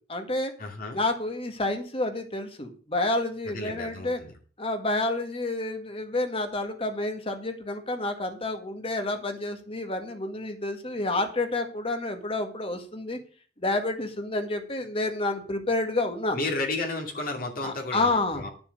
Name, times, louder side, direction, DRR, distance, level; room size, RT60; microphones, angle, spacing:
voice 1, 0.0-0.5 0.9-4.2 4.6-13.2 13.6-16.5 17.6-18.4, left 2 dB, 30° left, 6 dB, 1.8 m, -29 dB
voice 2, 0.6-1.0 3.4-4.3 16.3-18.5, left 2 dB, 55° left, 1 dB, 2.5 m, -32 dB
11.5 x 7.0 x 6.6 m, 0.41 s
head